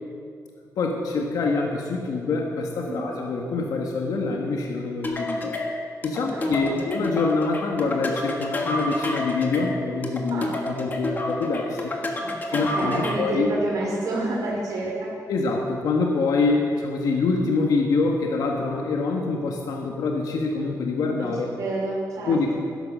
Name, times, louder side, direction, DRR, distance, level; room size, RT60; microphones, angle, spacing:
voice 1, 0.7-5.6 6.0-11.9 12.5-13.5 15.3-21.6 22.2-22.5, left 3 dB, 80° left, 1 dB, 1.5 m, -25 dB
sound 1, 5.0-13.4, left 1 dB, 30° left, 1.6 m, -29 dB
voice 2, 6.4-6.8 10.3-10.5 12.2-12.3 12.7-15.1 21.2-21.3 21.5-22.5, right 2 dB, 70° right, -5 dB, 2.6 m, -29 dB
12.0 x 11.0 x 6.4 m, 2.3 s
cardioid pair, 120°, 6 cm